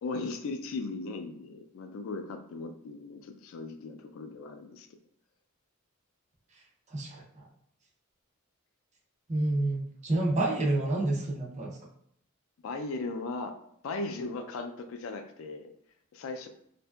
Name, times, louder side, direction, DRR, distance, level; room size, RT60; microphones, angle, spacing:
voice 1, 0.0-4.9 12.6-13.5 13.8-15.7 16.1-16.5, left 3 dB, 70° left, 6 dB, 0.3 m, -37 dB
voice 2, 6.9-7.5 9.3-11.8, right 2 dB, 35° right, -1 dB, 0.5 m, -29 dB
2.7 x 2.5 x 2.2 m, 0.70 s
head